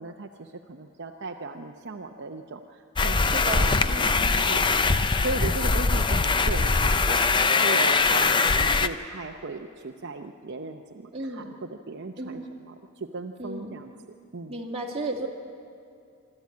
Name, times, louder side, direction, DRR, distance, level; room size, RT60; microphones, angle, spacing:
voice 1, 0.0-14.6, right 3 dB, 55° right, 3 dB, 0.7 m, -37 dB
sound 1, 3.0-8.9, left 4 dB, 20° left, 0.5 m, -22 dB
voice 2, 3.1-4.5 11.1-11.5 12.2-12.5 13.4-13.8 14.5-15.3, right 2 dB, 25° right, 1 dB, 1.9 m, -34 dB
25.0 x 13.0 x 8.5 m, 2.4 s
head